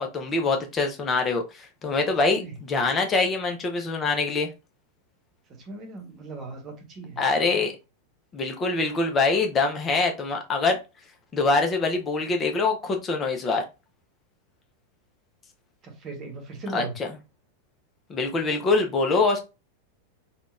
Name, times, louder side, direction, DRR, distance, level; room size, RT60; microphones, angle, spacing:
voice 1, 0.0-4.5 7.2-7.7 8.3-10.8 11.3-13.6 16.7-17.1 18.1-19.4, left 3 dB, 25° left, 0.7 m, -24 dB
voice 2, 5.5-7.2 15.8-16.9, right 3 dB, 30° right, 1.1 m, -38 dB
3.7 x 2.3 x 2.5 m
figure-of-eight pair, 90°, 0 cm